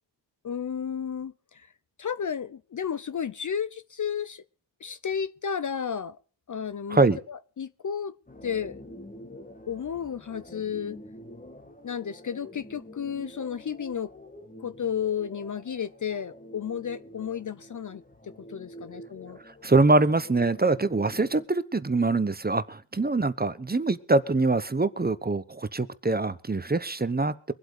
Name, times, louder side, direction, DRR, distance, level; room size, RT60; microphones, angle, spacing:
voice 1, 0.4-1.7 2.0-4.4 4.8-6.2 6.5-8.1 8.4-8.8 9.7-11.0 11.8-14.1 14.6-18.0 18.5-19.4, left 7 dB, 40° left, 0.6 m, -32 dB
sound 1, 8.3-21.4, equal, 15° left, 1.7 m, -47 dB
voice 2, 19.6-27.5, right 3 dB, 20° right, 1.0 m, -24 dB
23.5 x 8.0 x 5.0 m
cardioid pair, 50°, 48 cm